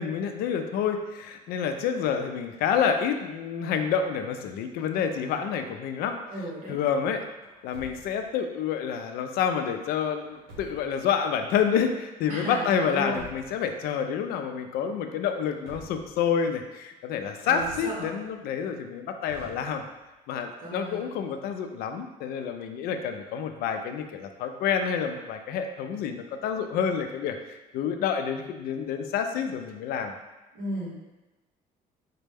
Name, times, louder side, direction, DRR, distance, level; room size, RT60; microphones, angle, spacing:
voice 1, 0.0-7.3 7.6-19.8 20.3-30.1, left 7 dB, 75° left, 6 dB, 0.4 m, -28 dB
voice 2, 6.3-6.8 12.3-13.2 17.4-18.1 20.6-21.1 30.5-31.0, equal, 55° right, -5 dB, 1.4 m, -34 dB
Truck, 7.4-8.4 10.2-11.1 12.7-13.7 15.3-16.3 17.5-18.4 19.2-20.1, right 1 dB, 85° right, 0.9 m, -48 dB
4.1 x 2.2 x 3.4 m, 1.1 s
cardioid pair, 130°, 16 cm